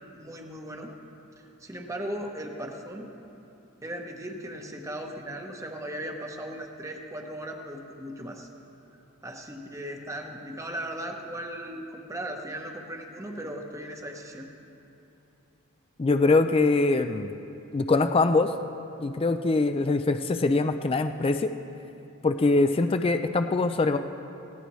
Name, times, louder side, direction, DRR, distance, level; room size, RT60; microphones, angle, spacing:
voice 1, 0.1-0.9 1.6-3.1 3.8-8.5 9.2-14.5, right 1 dB, 15° right, 2 dB, 0.9 m, -37 dB
voice 2, 16.0-17.3 17.7-18.5 19.0-21.5 22.2-24.0, left 3 dB, 25° left, 9 dB, 0.3 m, -23 dB
18.0 x 16.5 x 3.1 m, 2.8 s
head